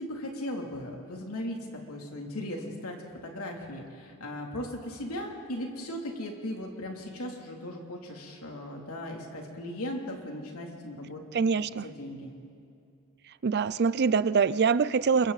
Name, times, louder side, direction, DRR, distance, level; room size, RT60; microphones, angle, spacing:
voice 1, 0.0-1.6 1.9-3.0 3.2-12.3, left 1 dB, 75° left, 1 dB, 3.0 m, -38 dB
voice 2, 11.3-11.9 13.4-15.3, right 5 dB, 50° right, 17 dB, 0.4 m, -24 dB
27.5 x 23.0 x 4.1 m, 2.5 s
head